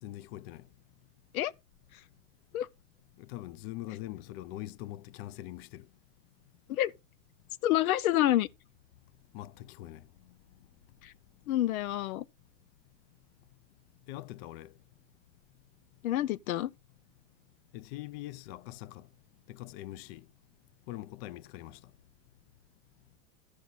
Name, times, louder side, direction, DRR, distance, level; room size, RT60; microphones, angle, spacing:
voice 1, 0.0-0.6 3.2-5.9 9.3-10.1 14.1-14.7 17.7-19.1 19.5-20.2 20.9-21.8, left 15 dB, 45° left, 0.6 m, -43 dB
voice 2, 7.6-8.5 11.0-11.1 11.5-12.2 16.0-16.7, left 13 dB, 85° left, 0.6 m, -28 dB
13.0 x 6.5 x 4.1 m
supercardioid pair, 140°, 42 cm